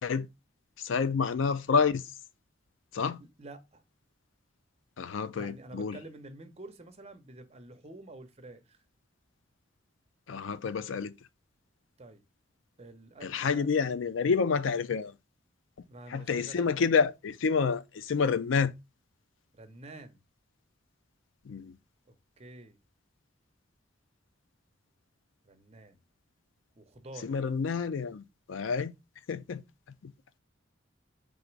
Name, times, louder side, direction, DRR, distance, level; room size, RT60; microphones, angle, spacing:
voice 1, 0.8-2.0 2.9-3.2 5.0-6.0 10.3-11.1 13.2-15.1 16.1-18.7 21.5-21.8 27.2-28.9 29.3-29.6 30.0-30.1, left 5 dB, 75° left, 0.4 m, -28 dB
voice 2, 3.2-3.8 5.3-8.8 12.0-12.2 12.8-13.7 15.9-16.7 19.5-20.2 22.1-22.8 25.4-26.0 26.8-27.3, right 2 dB, 35° right, 0.8 m, -48 dB
3.8 x 3.0 x 4.5 m
head